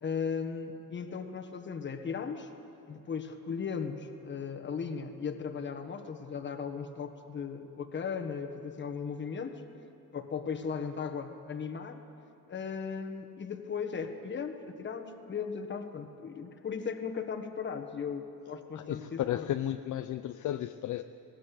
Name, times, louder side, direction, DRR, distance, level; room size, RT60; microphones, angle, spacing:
voice 1, 0.0-2.5 2.9-9.6 10.1-12.0 12.5-19.5, left 6 dB, 30° left, 6 dB, 1.4 m, -37 dB
voice 2, 18.8-21.0, left 12 dB, 55° left, 9 dB, 0.6 m, -33 dB
19.5 x 18.0 x 8.4 m, 2.8 s
cardioid pair, 170°, 36 cm